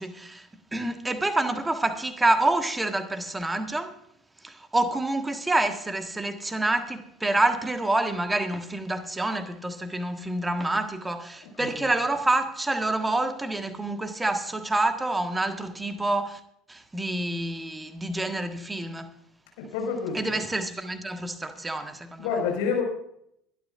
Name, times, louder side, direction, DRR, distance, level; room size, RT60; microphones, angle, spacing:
voice 1, 0.0-3.9 4.4-16.4 16.7-19.1 20.1-22.2, right 2 dB, 10° right, 1.5 m, -27 dB
voice 2, 11.4-11.9 19.6-20.4 22.2-22.8, left 6 dB, 60° left, 5.1 m, -29 dB
23.0 x 12.5 x 2.5 m
figure-of-eight pair, 65°, 0 cm